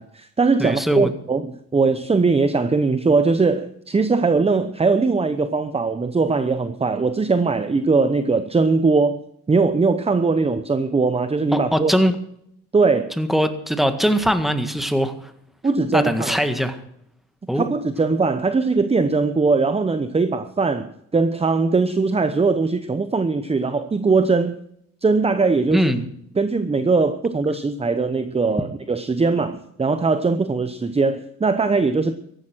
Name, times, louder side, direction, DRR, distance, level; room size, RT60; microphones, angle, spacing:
voice 1, 0.0-9.2 9.5-11.9 12.7-13.2 15.6-16.4 17.6-24.5 25.0-25.9 26.4-32.1, right 4 dB, 20° right, 11 dB, 0.8 m, -20 dB
voice 2, 0.6-1.1 11.5-12.2 13.2-15.3 15.9-16.8 17.5-17.7 25.7-26.1, equal, ahead, 8 dB, 1.8 m, -21 dB
15.0 x 11.5 x 6.2 m, 0.72 s
cardioid pair, 90°, 30 cm